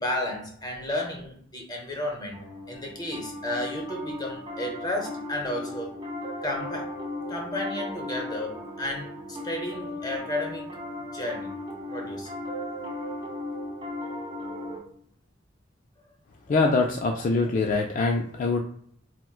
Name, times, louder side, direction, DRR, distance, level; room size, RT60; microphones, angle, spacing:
voice 1, 0.0-2.4 2.7-5.9 6.4-7.0 7.3-10.7 11.1-11.5 11.9-12.3 16.5-16.6, left 1 dB, 20° left, 1 dB, 0.7 m, -32 dB
Piano, 2.3-14.8, left 1 dB, 25° right, 0.7 m, -36 dB
voice 2, 16.5-18.6, left 3 dB, 45° left, 1 dB, 0.3 m, -24 dB
4.3 x 2.1 x 2.3 m, 0.62 s
head